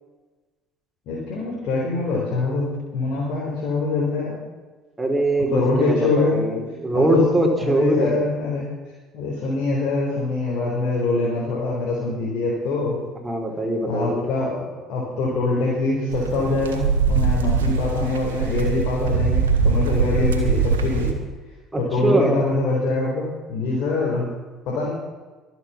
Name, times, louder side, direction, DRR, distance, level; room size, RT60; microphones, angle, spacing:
voice 1, 1.1-4.4 5.5-6.5 6.9-7.3 7.6-8.7 9.1-13.0 13.8-21.2 21.8-24.3 24.7-24.9, left 3 dB, 60° left, -4 dB, 4.4 m, -24 dB
voice 2, 5.0-8.1 13.2-14.3 21.7-22.3, right 1 dB, 15° right, 2 dB, 3.9 m, -22 dB
sound 1, 16.1-21.1, right 5 dB, 80° right, 1.6 m, -22 dB
24.0 x 8.1 x 5.9 m, 1.3 s
hypercardioid pair, 60°, 0 cm